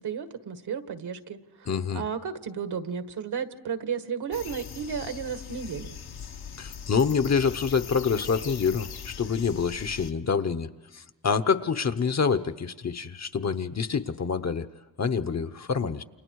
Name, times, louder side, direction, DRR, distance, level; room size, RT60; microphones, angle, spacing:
voice 1, 0.0-5.9, right 7 dB, 70° right, 8 dB, 1.9 m, -33 dB
voice 2, 1.7-2.0 6.6-10.7 10.9-14.7 15.0-16.0, left 6 dB, 40° left, 11 dB, 1.0 m, -26 dB
sound 1, 4.3-10.1, left 7 dB, 65° left, 1.3 m, -41 dB
30.0 x 28.5 x 4.8 m, 1.1 s
cardioid pair, 105°, 40 cm